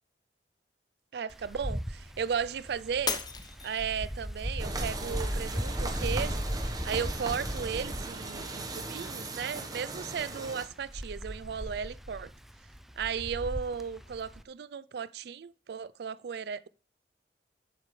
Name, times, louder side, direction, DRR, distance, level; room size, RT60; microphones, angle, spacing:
voice 1, 1.1-3.2 3.6-6.4 6.8-12.3 13.0-16.7, right 7 dB, 65° right, 0.4 m, -35 dB
Wind, 1.3-14.4, equal, ahead, 0.4 m, -37 dB
Shatter, 3.1-4.3 4.9-5.3 5.9-6.0, left 6 dB, 25° left, 0.8 m, -35 dB
sound 1, 4.6-10.7, right 3 dB, 20° right, 1.1 m, -39 dB
11.5 x 8.2 x 3.2 m
head